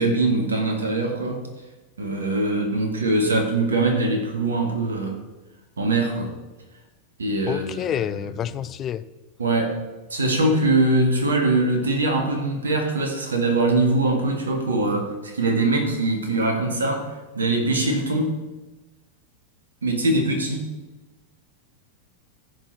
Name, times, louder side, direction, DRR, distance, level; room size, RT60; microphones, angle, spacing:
voice 1, 0.0-1.5 2.0-5.2 5.8-6.3 7.2-7.9 9.4-9.8 10.1-17.1 17.3-18.3 19.8-20.7, right 2 dB, 70° right, 3 dB, 1.8 m, -22 dB
voice 2, 7.5-9.0, left 10 dB, 30° left, 14 dB, 0.4 m, -28 dB
14.5 x 5.4 x 4.2 m, 1.1 s
figure-of-eight pair, 90°, 0 cm